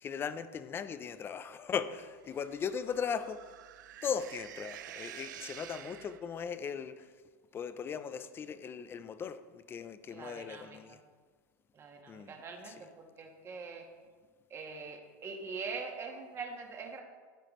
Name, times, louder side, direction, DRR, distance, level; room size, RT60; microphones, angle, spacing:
voice 1, 0.0-3.4 4.0-7.0 7.5-11.0 12.1-12.3 12.7-12.8, left 7 dB, 25° left, 12 dB, 0.4 m, -38 dB
sound 1, 2.2-6.5, right 12 dB, 85° right, 0.4 m, -49 dB
voice 2, 10.1-11.0 11.7-13.9 14.5-17.0, right 4 dB, 25° right, 3 dB, 1.3 m, -43 dB
13.5 x 4.8 x 3.1 m, 1.5 s
supercardioid pair, 120°, 10 cm